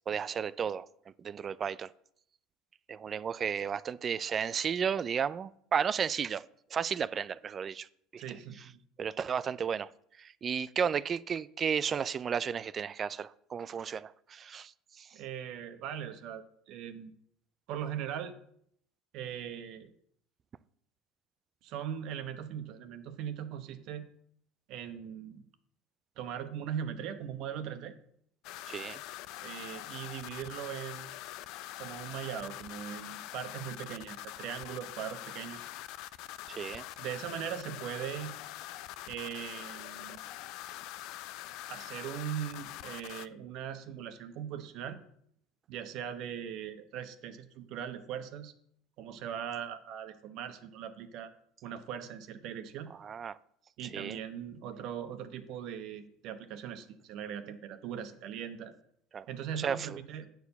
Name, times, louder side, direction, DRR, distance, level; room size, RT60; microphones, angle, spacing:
voice 1, 0.1-0.9 1.2-1.9 2.9-6.4 6.7-7.9 8.1-8.2 9.0-9.9 10.2-14.7 15.0-15.1 28.7-29.0 36.5-36.9 53.0-53.4 53.9-54.2 59.1-59.2 59.6-60.0, right 7 dB, 35° right, 0.4 m, -33 dB
voice 2, 8.2-8.7 15.1-17.1 17.7-18.3 19.1-19.9 21.6-24.0 24.7-25.4 26.2-27.9 29.4-31.2 31.8-35.7 37.0-38.3 39.1-40.2 41.7-45.0 45.7-48.5 49.0-51.3 51.6-52.9 53.8-58.7 59.3-60.3, right 9 dB, 60° right, 1.1 m, -40 dB
sound 1, 28.4-43.3, left 15 dB, 65° left, 0.4 m, -44 dB
9.3 x 4.7 x 6.9 m
supercardioid pair, 110°, 0 cm